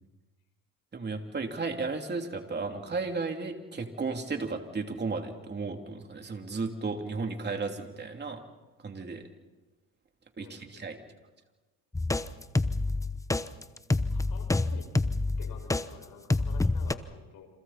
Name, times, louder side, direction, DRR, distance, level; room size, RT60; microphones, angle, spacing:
voice 1, 0.9-8.4 8.8-9.2 10.4-11.0, right 4 dB, 30° right, 4 dB, 3.1 m, -34 dB
sound 1, 11.9-15.8 16.3-16.9, left 2 dB, 10° left, 0.9 m, -27 dB
voice 2, 14.1-14.9 15.4-17.5, left 7 dB, 75° left, 4 dB, 5.9 m, -50 dB
29.0 x 28.0 x 4.3 m, 1.2 s
cardioid pair, 100°, 35 cm